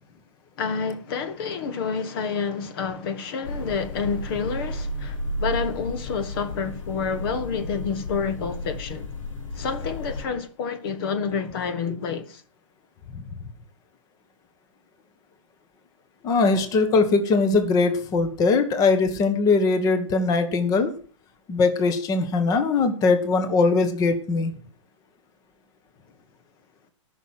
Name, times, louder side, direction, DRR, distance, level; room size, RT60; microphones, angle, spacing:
voice 1, 0.6-9.1 9.5-12.4, left 5 dB, 45° left, 1.4 m, -29 dB
sound 1, 3.4-10.2, left 1 dB, 80° left, 3.9 m, -33 dB
voice 2, 16.2-20.9 21.5-24.5, left 4 dB, 20° left, 1.4 m, -21 dB
13.5 x 6.3 x 7.5 m
hypercardioid pair, 140°, 17 cm